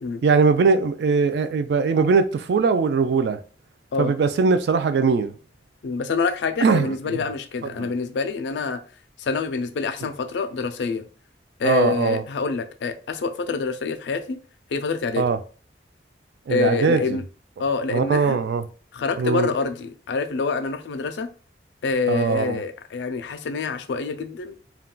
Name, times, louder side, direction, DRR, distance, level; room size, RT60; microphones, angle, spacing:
voice 1, 0.2-3.4 4.0-5.3 6.6-7.2 7.8-7.9 11.6-12.2 15.2-15.4 16.5-17.0 17.9-18.6 19.2-19.5 22.1-22.6, right 5 dB, 65° right, 0.3 m, -20 dB
voice 2, 5.8-8.8 9.2-11.0 11.6-14.4 14.7-15.3 16.5-17.2 17.6-18.4 18.9-21.3 21.8-24.5, left 4 dB, 75° left, 0.4 m, -26 dB
2.3 x 2.3 x 3.7 m
head